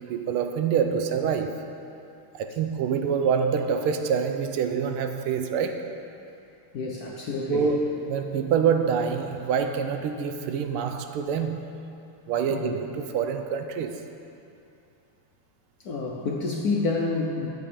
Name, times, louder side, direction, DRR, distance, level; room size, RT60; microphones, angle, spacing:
voice 1, 0.0-1.7 2.3-5.9 7.5-11.7 12.3-14.0, right 6 dB, 85° right, 6 dB, 1.5 m, -26 dB
voice 2, 6.7-7.7 12.5-12.8 15.8-17.5, left 3 dB, 65° left, -1 dB, 1.0 m, -28 dB
11.5 x 7.5 x 5.0 m, 2.7 s
omnidirectional pair, 2.4 m